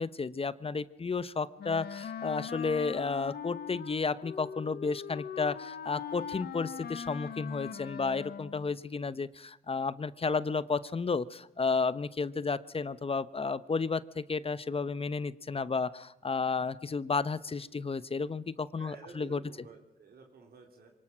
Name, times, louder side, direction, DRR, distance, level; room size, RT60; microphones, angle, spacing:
voice 1, 0.0-19.4, left 4 dB, 35° left, 16 dB, 1.0 m, -32 dB
Wind instrument woodwind instrument, 1.6-8.7, left 8 dB, 75° left, 1.2 m, -41 dB
voice 2, 18.8-20.9, right 4 dB, 70° right, 2 dB, 3.8 m, -52 dB
24.0 x 19.5 x 6.3 m, 0.91 s
cardioid pair, 70°, 17 cm